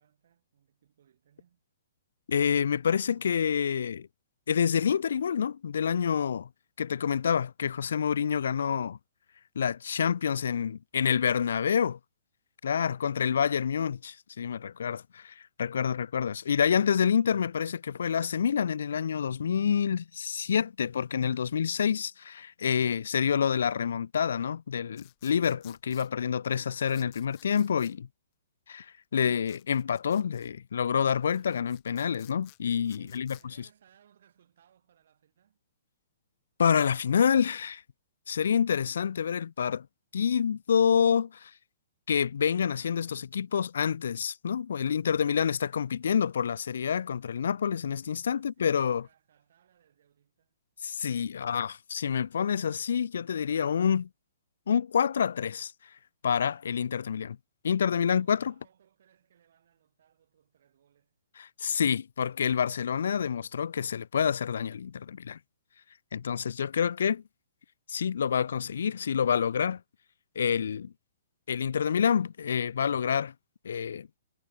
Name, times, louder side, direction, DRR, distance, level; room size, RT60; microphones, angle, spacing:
voice 1, 0.0-1.6 9.6-10.0 33.0-35.6 48.2-50.5 57.8-61.2, right 9 dB, 65° right, 6.1 m, -65 dB
voice 2, 2.3-4.1 4.5-6.5 6.8-9.0 9.6-12.0 12.6-28.1 28.7-33.4 36.6-37.8 38.3-39.9 40.1-41.5 42.1-49.0 50.8-54.1 54.7-55.7 56.2-57.4 57.6-58.5 61.4-65.4 66.1-67.2 67.9-69.8 70.4-70.9 71.5-73.3 73.6-74.1, left 7 dB, 75° left, 0.3 m, -27 dB
sound 1, 24.9-26.1 26.9-27.9 29.4-30.5 31.1-33.4, left 29 dB, 35° left, 0.7 m, -56 dB
hypercardioid pair, 145°, 0 cm